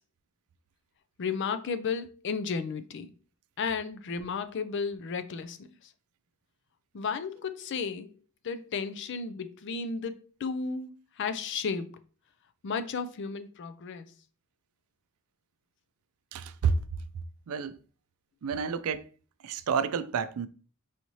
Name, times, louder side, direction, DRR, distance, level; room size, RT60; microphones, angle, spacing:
voice 1, 1.2-3.1 3.6-5.7 6.9-8.1 8.4-10.9 11.2-12.0 12.6-14.1, left 5 dB, 55° left, 0.4 m, -33 dB
voice 2, 16.3-16.8 17.5-17.8 18.4-19.1 19.4-20.5, right 6 dB, 85° right, 0.4 m, -29 dB
4.8 x 2.7 x 3.0 m
head